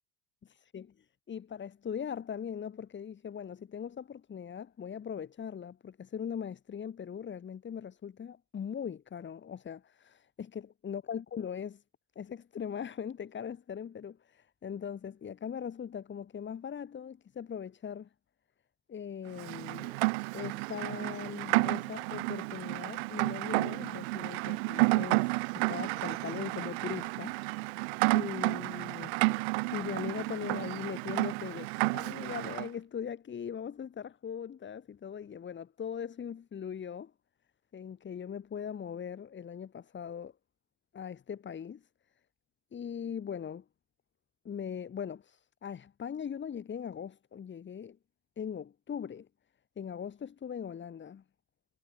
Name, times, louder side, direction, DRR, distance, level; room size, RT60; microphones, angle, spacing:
voice 1, 0.7-11.8 12.2-18.1 18.9-20.0 20.3-27.7 28.1-29.4 29.7-37.1 37.7-40.3 40.9-41.8 42.7-43.7 44.5-48.0 48.4-49.3 49.8-51.2, left 8 dB, 35° left, 5.3 m, -40 dB
Rain, 19.4-32.7, right 27 dB, 80° right, 1.4 m, -31 dB
supercardioid pair, 85°, 32 cm